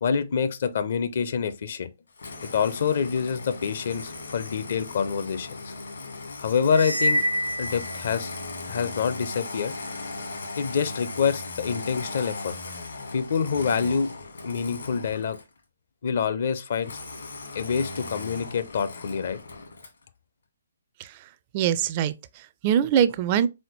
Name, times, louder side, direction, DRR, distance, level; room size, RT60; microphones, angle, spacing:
voice 1, 0.0-1.9 2.5-5.7 6.4-7.2 7.6-8.3 8.7-9.7 10.6-12.6 13.1-14.1 14.4-15.4 16.0-17.0 17.5-19.4, left 6 dB, 50° left, 0.5 m, -26 dB
Engine starting, 2.2-15.6 16.8-20.0, left 3 dB, 65° left, 1.4 m, -38 dB
sound 1, 6.7-8.6, equal, 85° right, 0.7 m, -27 dB
voice 2, 21.5-23.5, right 9 dB, 30° right, 0.4 m, -23 dB
4.2 x 3.9 x 3.1 m
figure-of-eight pair, 130°, 0 cm